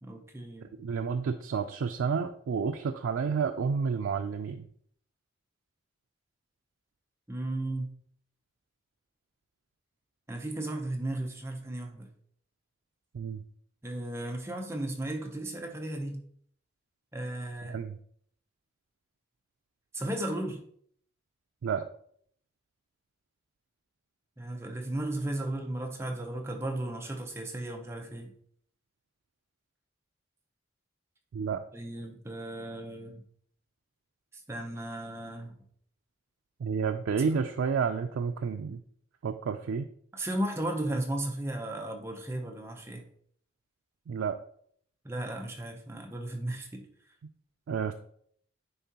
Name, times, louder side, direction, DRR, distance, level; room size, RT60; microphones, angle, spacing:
voice 1, 0.0-0.7 7.3-7.9 10.3-12.1 13.8-16.2 17.1-17.8 19.9-20.6 24.4-28.3 31.7-33.2 34.5-35.6 37.2-37.3 40.1-43.1 45.0-46.8, right 1 dB, 15° right, 3 dB, 0.6 m, -35 dB
voice 2, 0.8-4.7 13.1-13.4 17.6-18.0 21.6-21.9 31.3-31.6 36.6-38.8 39.2-39.9 44.1-44.4 47.7-47.9, right 6 dB, 85° right, 6 dB, 0.4 m, -30 dB
9.5 x 3.6 x 2.8 m, 0.63 s
head